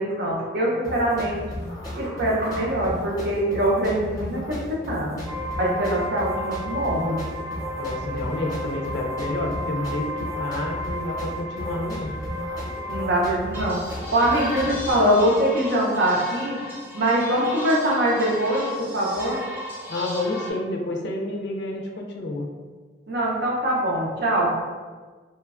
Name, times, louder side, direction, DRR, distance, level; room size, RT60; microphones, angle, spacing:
voice 1, 0.0-1.4 1.9-5.2 5.6-7.2 12.9-13.8 14.1-16.6 16.9-19.4 23.1-24.5, right 1 dB, 60° right, -3 dB, 0.6 m, -23 dB
sound 1, 0.8-14.9, left 1 dB, 20° left, 0.8 m, -35 dB
sound 2, 5.3-13.3 13.5-20.5, left 1 dB, 10° right, 0.5 m, -34 dB
voice 2, 7.8-10.1 10.4-12.1 19.9-22.5, left 2 dB, 60° left, 1 dB, 0.4 m, -29 dB
3.1 x 2.1 x 2.4 m, 1.4 s
head